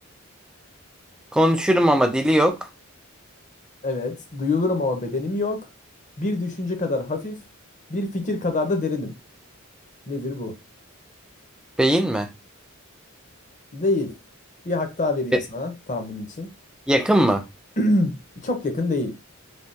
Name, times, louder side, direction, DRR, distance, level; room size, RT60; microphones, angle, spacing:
voice 1, 1.3-2.6 11.8-12.3 15.3-15.4 16.9-17.4, equal, 5° right, 0.3 m, -19 dB
voice 2, 3.8-5.6 6.2-7.4 7.9-9.1 10.1-10.6 13.7-14.1 14.6-16.5 17.8-19.2, left 2 dB, 35° left, 0.7 m, -25 dB
3.4 x 2.2 x 2.6 m
head